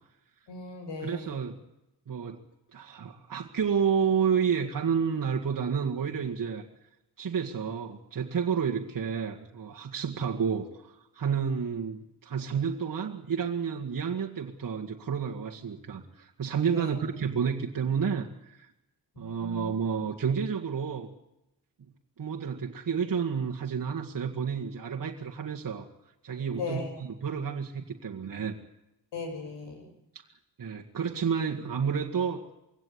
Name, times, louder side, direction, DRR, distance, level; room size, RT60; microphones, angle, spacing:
voice 1, 0.5-1.4 16.7-16.9 19.2-19.8 26.5-26.9 29.1-29.9, left 3 dB, 85° left, 5 dB, 7.0 m, -37 dB
voice 2, 1.0-1.6 2.1-2.4 2.7-6.6 7.2-18.7 19.2-21.1 22.2-25.9 26.2-28.5 30.6-32.5, right 6 dB, 50° right, 0 dB, 1.9 m, -30 dB
23.0 x 17.0 x 9.6 m, 0.87 s
cardioid pair, 100°, 42 cm